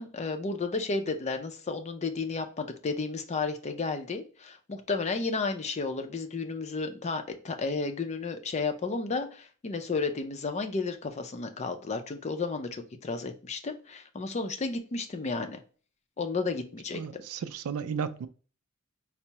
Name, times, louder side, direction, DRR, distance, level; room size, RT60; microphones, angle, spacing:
voice 1, 0.0-15.6 16.2-17.2, left 4 dB, 30° left, 0.4 m, -32 dB
voice 2, 16.9-18.3, right 6 dB, 85° right, 0.3 m, -34 dB
4.4 x 2.0 x 2.8 m
head